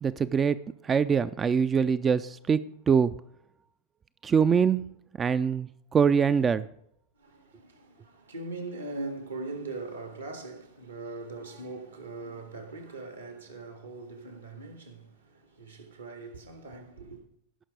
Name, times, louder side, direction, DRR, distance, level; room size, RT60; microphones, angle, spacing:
voice 1, 0.0-3.1 4.2-4.8 5.2-6.7, right 6 dB, 20° right, 0.3 m, -24 dB
voice 2, 7.2-17.2, right 3 dB, 80° right, 1.9 m, -41 dB
17.5 x 5.8 x 4.8 m
figure-of-eight pair, 90°, 0 cm